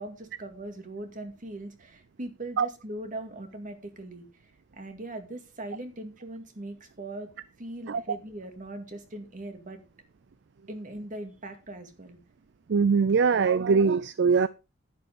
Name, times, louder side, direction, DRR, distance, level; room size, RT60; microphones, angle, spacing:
voice 1, 0.0-4.3 4.7-7.3 7.6-9.8 10.7-12.2, right 1 dB, 40° right, 2.2 m, -40 dB
voice 2, 12.7-14.5, right 5 dB, 60° right, 0.4 m, -22 dB
10.5 x 10.5 x 3.7 m
head